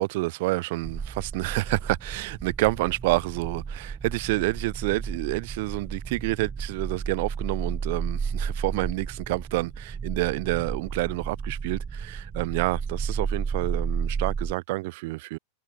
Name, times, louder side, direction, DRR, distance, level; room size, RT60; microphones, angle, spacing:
voice 1, 0.0-15.4, right 22 dB, 50° right, 1.4 m, -28 dB
sound 1, 0.8-14.5, right 5 dB, 15° right, 1.8 m, -33 dB
figure-of-eight pair, 90°, 0 cm